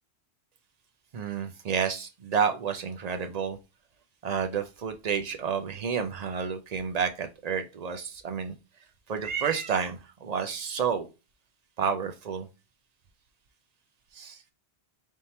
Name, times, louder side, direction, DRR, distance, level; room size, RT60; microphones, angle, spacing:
voice 1, 1.1-3.6 4.2-8.5 9.1-11.1 11.8-12.5 14.1-14.4, right 6 dB, 55° right, 7 dB, 0.5 m, -30 dB
3.5 x 2.7 x 4.2 m, 0.29 s
omnidirectional pair, 1.1 m